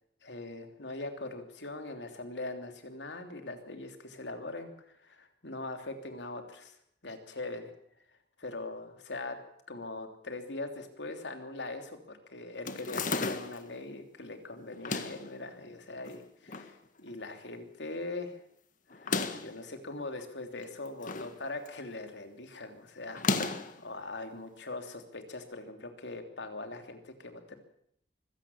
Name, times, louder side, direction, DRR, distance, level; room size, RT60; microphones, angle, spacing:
voice 1, 0.2-6.8 7.0-7.7 8.4-9.4 9.7-18.4 18.9-27.6, left 2 dB, 80° left, 6 dB, 3.2 m, -41 dB
sound 1, 12.7-13.7 14.7-15.3 16.1-16.7 17.1-17.2 17.3-17.4 18.9-19.6 20.6-21.3 21.7-22.0 23.1-23.8, left 3 dB, 50° left, 1.7 m, -33 dB
24.0 x 16.5 x 7.2 m, 0.69 s
head